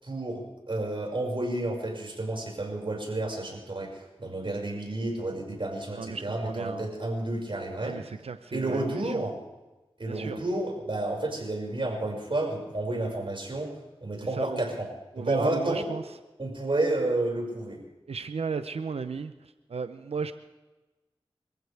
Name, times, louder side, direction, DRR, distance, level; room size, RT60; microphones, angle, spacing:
voice 1, 0.0-7.9 8.5-9.3 10.0-13.7 14.0-14.9 15.2-15.9 16.4-17.8, right 2 dB, 55° right, 0 dB, 6.0 m, -30 dB
voice 2, 5.9-6.9 7.8-9.3 10.1-10.4 14.2-14.6 15.1-16.0 18.1-20.3, right 5 dB, 90° right, 10 dB, 0.8 m, -35 dB
27.0 x 15.0 x 3.5 m, 1.1 s
cardioid pair, 40°, 10 cm